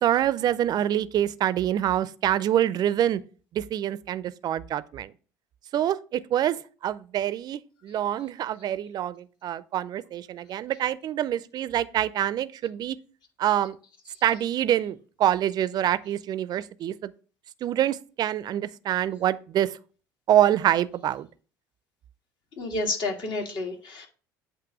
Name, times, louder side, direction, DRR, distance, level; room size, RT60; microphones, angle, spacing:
voice 1, 0.0-3.2 3.5-5.1 5.7-13.0 13.4-13.8 14.2-17.1 17.6-19.7 20.3-21.3, right 11 dB, 45° right, 0.5 m, -26 dB
voice 2, 22.6-24.1, left 2 dB, 55° left, 1.7 m, -30 dB
8.2 x 2.8 x 6.0 m
hypercardioid pair, 65°, 9 cm